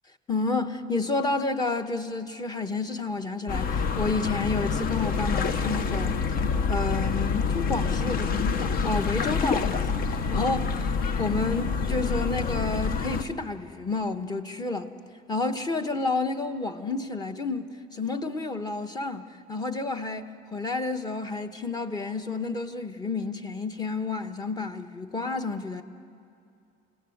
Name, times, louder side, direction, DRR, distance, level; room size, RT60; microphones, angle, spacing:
voice 1, 0.3-10.9 11.2-14.9 15.3-25.8, left 3 dB, 20° left, 1.1 m, -30 dB
sound 1, 3.5-13.2, left 5 dB, 50° left, 1.0 m, -27 dB
29.0 x 17.5 x 7.9 m
cardioid pair, 140°, 20 cm